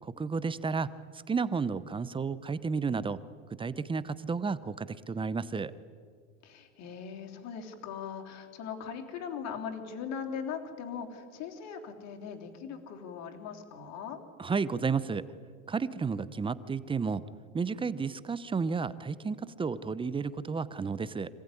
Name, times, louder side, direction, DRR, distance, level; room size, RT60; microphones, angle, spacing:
voice 1, 0.0-0.9 1.3-3.2 3.6-5.7 14.4-15.2 15.7-17.2 17.5-21.3, right 5 dB, 15° right, 16 dB, 0.8 m, -32 dB
voice 2, 6.4-14.2, left 7 dB, 50° left, 4 dB, 3.4 m, -40 dB
25.5 x 15.5 x 9.8 m, 2.1 s
supercardioid pair, 120°, 35 cm